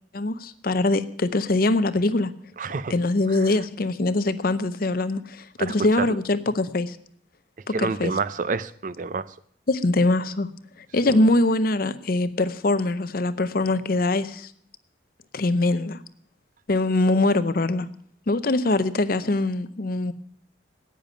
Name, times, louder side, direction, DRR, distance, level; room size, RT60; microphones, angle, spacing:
voice 1, 0.1-2.3 2.9-7.0 7.7-8.1 9.7-10.5 10.9-14.5 15.3-16.0 16.7-17.9 18.3-20.1, left 2 dB, 50° left, 13 dB, 0.7 m, -23 dB
voice 2, 2.6-2.9 3.3-3.5 5.6-6.2 7.7-9.3 11.1-11.2, right 4 dB, 40° right, 17 dB, 0.4 m, -29 dB
10.0 x 9.1 x 8.9 m, 0.63 s
head